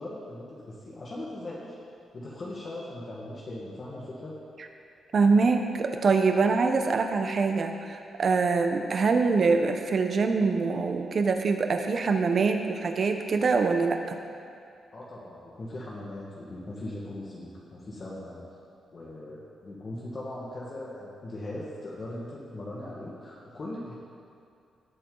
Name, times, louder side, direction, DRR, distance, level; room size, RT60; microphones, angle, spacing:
voice 1, 0.0-1.7 2.1-4.4 14.9-18.4 18.9-23.9, left 1 dB, 35° left, -6 dB, 1.7 m, -39 dB
voice 2, 5.1-14.2, right 4 dB, 45° right, 5 dB, 0.9 m, -24 dB
18.0 x 8.4 x 4.0 m, 2.4 s
cardioid pair, 130°, 0 cm